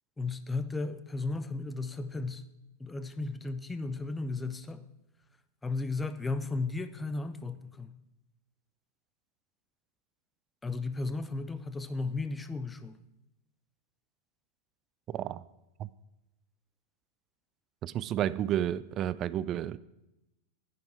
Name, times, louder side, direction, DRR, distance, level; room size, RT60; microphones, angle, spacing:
voice 1, 0.2-2.4 2.8-4.8 5.6-7.9 10.6-13.0, left 3 dB, 10° left, 0.6 m, -35 dB
voice 2, 15.1-15.4 15.8-15.9 17.8-19.8, right 11 dB, 30° right, 0.4 m, -31 dB
10.0 x 9.4 x 4.6 m
figure-of-eight pair, 90°, 0 cm